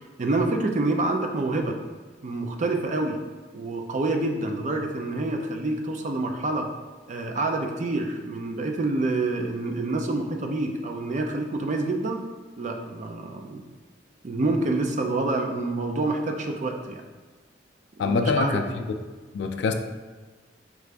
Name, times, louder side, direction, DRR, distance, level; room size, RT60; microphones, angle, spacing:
voice 1, 0.2-1.8 2.2-3.2 3.5-6.7 7.1-12.2 12.6-13.6 14.2-17.0 18.0-18.9, right 2 dB, 40° right, 3 dB, 0.4 m, -27 dB
voice 2, 18.0-18.6 19.3-19.7, left 4 dB, 65° left, 6 dB, 0.3 m, -24 dB
4.6 x 2.5 x 3.3 m, 1.4 s
head